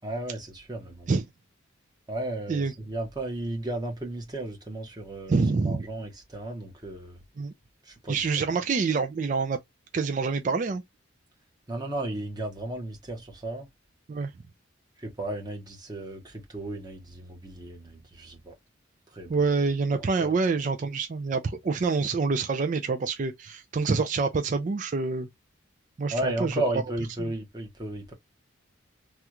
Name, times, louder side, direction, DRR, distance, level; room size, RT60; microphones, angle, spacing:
voice 1, 0.0-1.1 2.1-7.2 7.9-8.5 11.7-13.7 15.0-18.5 19.1-19.4 19.9-20.3 26.1-28.1, right 1 dB, 20° right, 1.0 m, -34 dB
voice 2, 5.3-5.9 7.4-7.5 8.1-9.6 9.9-10.8 14.1-14.3 19.3-25.3 26.0-26.6 27.2-27.3, right 4 dB, 40° right, 0.4 m, -26 dB
3.3 x 2.4 x 2.8 m
head